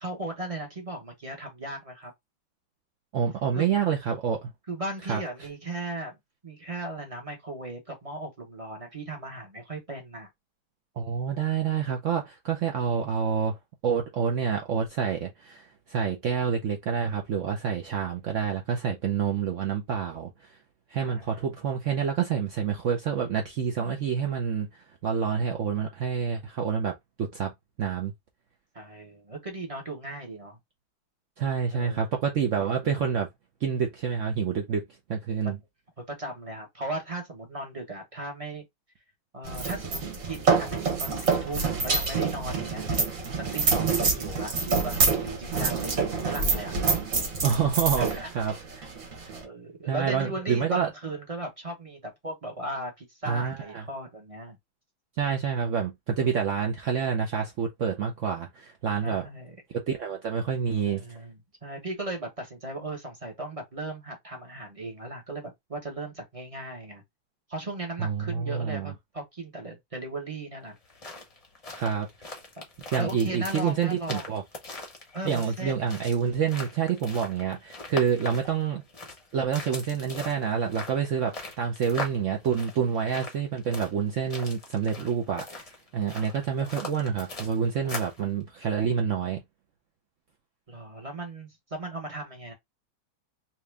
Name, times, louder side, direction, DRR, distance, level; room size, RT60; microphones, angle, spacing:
voice 1, 0.0-2.1 3.5-3.7 4.7-6.2 6.4-10.3 21.0-21.5 28.7-30.6 31.7-32.1 32.6-33.0 36.1-38.6 39.3-40.0 40.3-42.9 43.3-46.7 47.4-48.3 49.3-54.6 59.0-59.6 60.9-67.0 67.5-70.8 72.6-72.7 73.0-74.3 75.1-75.7 86.1-86.7 90.7-92.5, right 2 dB, 25° right, 0.8 m, -37 dB
voice 2, 3.1-4.5 5.1-5.2 11.0-13.6 13.8-20.6 20.9-24.7 25.0-27.5 27.8-28.1 31.4-33.3 33.6-34.8 35.1-35.6 47.4-48.9 49.2-49.3 49.9-50.9 53.3-53.8 55.2-59.2 59.7-61.1 68.0-68.9 71.7-72.3 72.9-74.4 75.2-78.8 79.3-85.7 85.9-89.4, right 7 dB, 80° right, 0.6 m, -28 dB
sound 1, 39.4-49.4, right 4 dB, 50° right, 1.3 m, -27 dB
sound 2, 70.8-88.2, left 2 dB, 35° left, 0.6 m, -41 dB
3.0 x 3.0 x 3.3 m
omnidirectional pair, 2.1 m